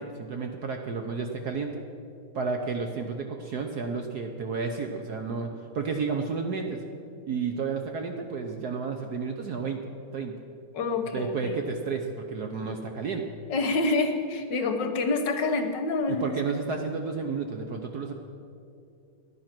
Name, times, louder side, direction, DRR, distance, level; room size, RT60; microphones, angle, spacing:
voice 1, 0.0-1.8 2.3-6.8 7.3-9.8 10.1-10.4 11.1-13.2 16.1-18.1, right 5 dB, 60° right, 4 dB, 1.1 m, -31 dB
voice 2, 10.7-11.5 13.5-16.3, left 3 dB, 60° left, 6 dB, 1.6 m, -27 dB
15.0 x 11.0 x 6.0 m, 2.6 s
omnidirectional pair, 2.4 m